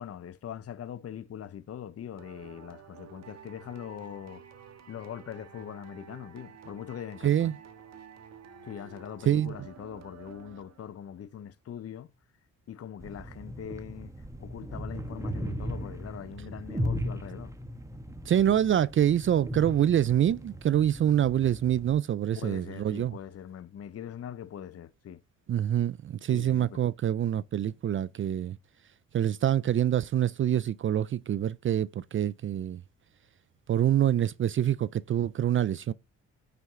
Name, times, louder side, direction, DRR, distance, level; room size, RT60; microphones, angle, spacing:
voice 1, 0.0-4.4 4.9-7.5 8.6-12.1 12.7-14.1 14.4-17.5 22.3-25.2 26.3-26.8, left 9 dB, 50° left, 0.9 m, -42 dB
sound 1, 2.2-11.1, right 7 dB, 60° right, 1.5 m, -51 dB
sound 2, 13.0-21.9, equal, 10° right, 1.2 m, -37 dB
voice 2, 18.3-23.2 25.5-28.6 29.1-32.8 33.7-35.9, right 10 dB, 40° right, 0.4 m, -26 dB
9.3 x 5.9 x 3.7 m
cardioid pair, 90°, 30 cm